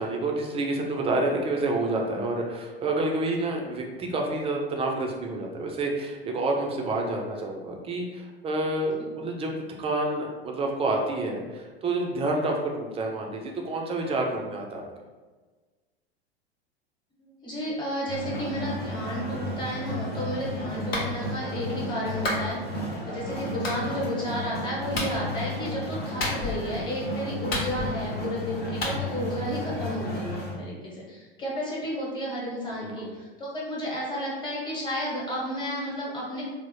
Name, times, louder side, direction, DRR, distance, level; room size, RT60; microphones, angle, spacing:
voice 1, 0.0-14.8 32.8-33.1, right 2 dB, 20° right, 0 dB, 0.5 m, -28 dB
voice 2, 17.2-36.4, equal, 15° left, -5 dB, 1.2 m, -32 dB
sound 1, 18.1-30.5, left 1 dB, 30° left, 1.1 m, -33 dB
Clapping, 20.9-21.1 22.2-22.5 23.6-23.8 24.9-25.2 26.2-26.7 27.5-28.1 28.8-29.0, left 2 dB, 70° left, 0.9 m, -29 dB
3.5 x 2.1 x 2.9 m, 1.3 s
figure-of-eight pair, 85°, 31 cm